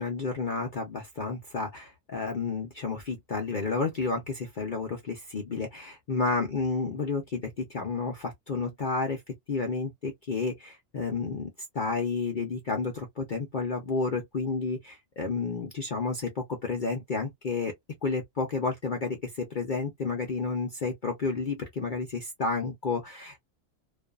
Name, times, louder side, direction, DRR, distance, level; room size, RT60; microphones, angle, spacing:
voice 1, 0.0-9.2 9.5-17.7 18.0-23.4, left 4 dB, 45° left, 0.7 m, -31 dB
2.5 x 2.4 x 2.3 m
omnidirectional pair, 1.4 m